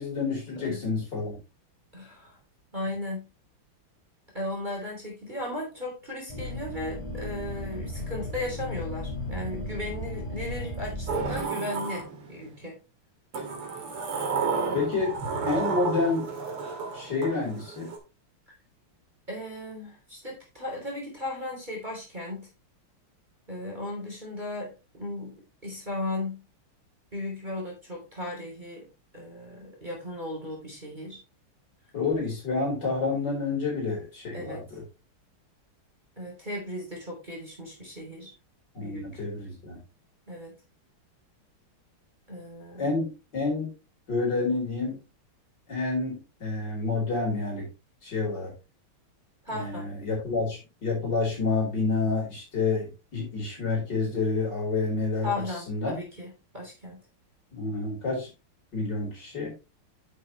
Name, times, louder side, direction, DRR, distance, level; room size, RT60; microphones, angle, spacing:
voice 1, 0.0-1.4 14.7-15.1 15.4-16.3 16.9-17.9 31.9-34.8 38.7-39.8 42.8-43.1 43.3-43.7 44.1-45.0 45.7-47.7 48.0-48.5 49.5-55.3 55.7-55.9 57.5-58.3 58.7-59.5, left 3 dB, 50° left, -2 dB, 5.0 m, -28 dB
voice 2, 1.9-2.4 2.7-3.3 4.3-12.7 19.3-22.5 23.5-26.5 27.1-28.9 29.1-31.2 34.3-34.6 36.2-38.3 38.8-39.0 40.3-40.5 42.3-42.9 49.4-49.9 55.2-57.0, left 1 dB, 20° right, -2 dB, 3.4 m, -36 dB
sound 1, 6.3-11.4, left 1 dB, 15° left, 2.6 m, -35 dB
Sliding door, 11.1-12.6 13.3-18.0, right 4 dB, 85° right, 2.9 m, -32 dB
10.0 x 6.5 x 3.2 m, 0.28 s
omnidirectional pair, 2.4 m